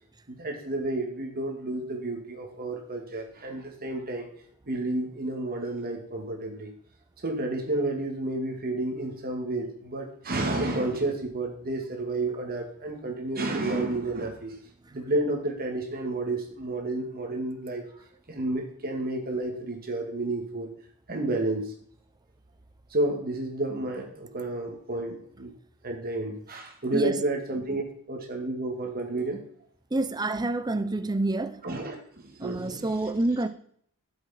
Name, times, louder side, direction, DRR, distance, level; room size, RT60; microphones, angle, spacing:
voice 1, 0.3-4.3 4.7-6.7 7.2-14.6 14.9-17.8 18.3-20.7 21.1-21.7 22.9-25.5 25.8-27.8 28.1-29.4 31.6-33.1, right 2 dB, 45° right, 2.0 m, -31 dB
voice 2, 29.9-31.6 32.4-33.5, right 2 dB, 20° right, 0.7 m, -28 dB
12.5 x 7.9 x 4.3 m
head